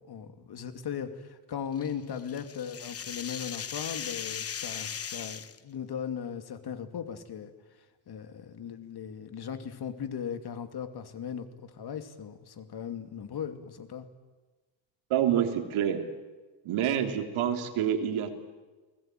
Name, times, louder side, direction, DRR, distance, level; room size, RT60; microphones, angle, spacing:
voice 1, 0.0-7.5 8.1-14.1, left 8 dB, 50° left, 8 dB, 2.6 m, -38 dB
sound 1, 1.8-5.6, left 7 dB, 30° left, 0.9 m, -38 dB
voice 2, 15.1-16.1 16.7-18.3, right 9 dB, 85° right, 5 dB, 3.4 m, -27 dB
30.0 x 20.0 x 9.1 m, 1.3 s
cardioid pair, 150°, 49 cm